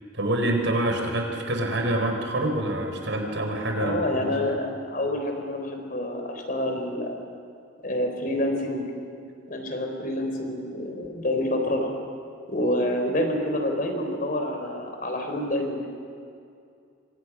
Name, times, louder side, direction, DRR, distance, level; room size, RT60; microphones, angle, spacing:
voice 1, 0.1-4.4, right 1 dB, 75° right, 3 dB, 4.4 m, -26 dB
voice 2, 3.8-7.2 7.8-8.8 9.5-11.9 12.5-15.9, left 1 dB, 45° left, 4 dB, 3.9 m, -27 dB
28.5 x 24.5 x 6.1 m, 2.4 s
head